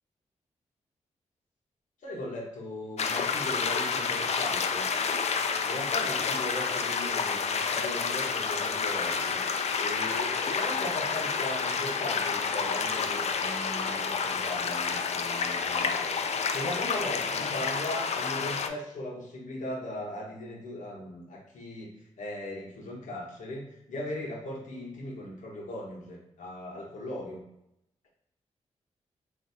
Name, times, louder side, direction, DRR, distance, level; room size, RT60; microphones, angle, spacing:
voice 1, 2.0-4.9 5.6-9.4 9.8-16.1 16.5-21.9 22.2-27.4, left 1 dB, 75° left, -3 dB, 1.0 m, -38 dB
sound 1, 3.0-18.7, left 5 dB, 55° left, 0.4 m, -29 dB
3.2 x 2.6 x 2.7 m, 0.80 s
cardioid pair, 50°, 13 cm